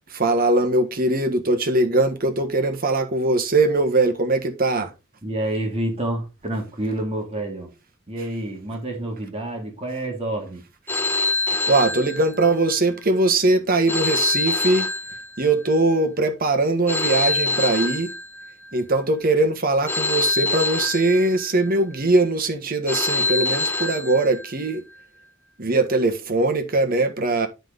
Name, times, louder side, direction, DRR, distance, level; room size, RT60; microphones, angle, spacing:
voice 1, 0.1-4.9 11.7-14.9 15.4-18.1 18.7-24.8 25.6-27.5, right 2 dB, 45° right, 1.5 m, -21 dB
voice 2, 5.2-7.7 8.1-10.6, right 1 dB, 30° right, 2.6 m, -28 dB
Telephone, 10.9-12.7 13.9-15.7 16.9-18.7 19.9-21.7 22.9-24.7, left 3 dB, 10° left, 1.1 m, -25 dB
10.5 x 5.3 x 4.0 m
head